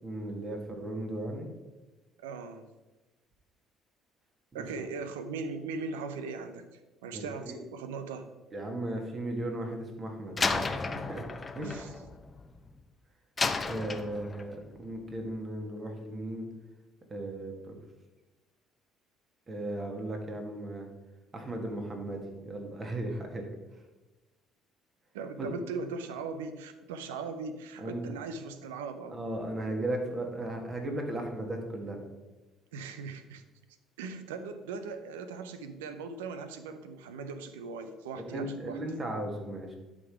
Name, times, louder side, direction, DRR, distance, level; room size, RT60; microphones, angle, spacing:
voice 1, 0.0-1.5 4.5-4.9 7.1-7.6 8.5-11.3 11.5-11.7 13.7-16.5 17.1-17.8 19.5-20.9 21.3-23.5 25.4-25.5 27.8-28.1 29.1-32.0 38.2-39.8, right 1 dB, 35° right, 3 dB, 2.0 m, -36 dB
voice 2, 2.2-2.6 4.5-8.2 11.6-12.0 25.1-29.2 32.7-33.4 34.0-38.8, right 4 dB, 90° right, 9 dB, 0.6 m, -39 dB
Slam, 10.4-12.8 13.4-14.6, left 4 dB, 30° left, 0.7 m, -33 dB
11.0 x 3.9 x 4.8 m, 1.1 s
hypercardioid pair, 65°, 0 cm